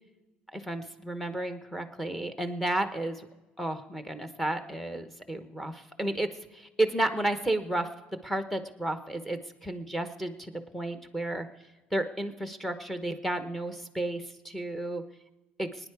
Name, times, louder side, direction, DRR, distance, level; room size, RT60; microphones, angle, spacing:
voice 1, 0.5-3.3 3.6-7.9 8.2-11.5 11.9-15.0 15.6-15.7, right 1 dB, 5° left, 8 dB, 1.0 m, -32 dB
23.5 x 9.9 x 4.8 m, 1.1 s
cardioid pair, 150°, 4 cm